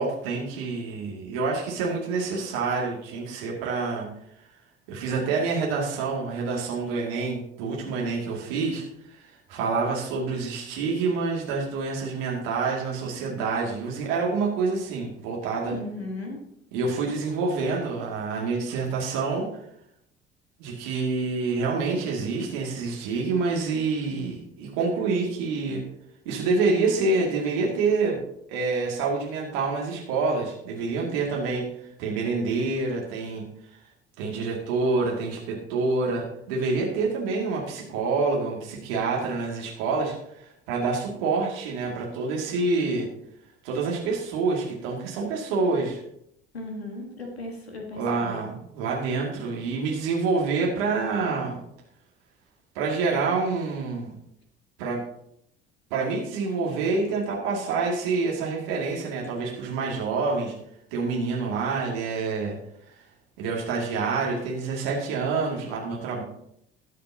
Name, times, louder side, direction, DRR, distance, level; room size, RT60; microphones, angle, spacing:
voice 1, 0.0-4.1 4.9-15.7 16.7-19.5 20.6-25.8 26.3-28.2 28.5-31.6 32.0-33.4 34.2-43.1 43.6-46.0 48.0-51.6 52.7-54.1 54.8-55.0 55.9-60.5 60.9-62.6 63.4-66.2, right 4 dB, 65° right, -2 dB, 2.4 m, -27 dB
voice 2, 15.7-16.4 46.5-48.5, left 2 dB, 85° left, 2 dB, 1.4 m, -36 dB
20.0 x 6.7 x 2.8 m, 0.76 s
figure-of-eight pair, 55°, 30 cm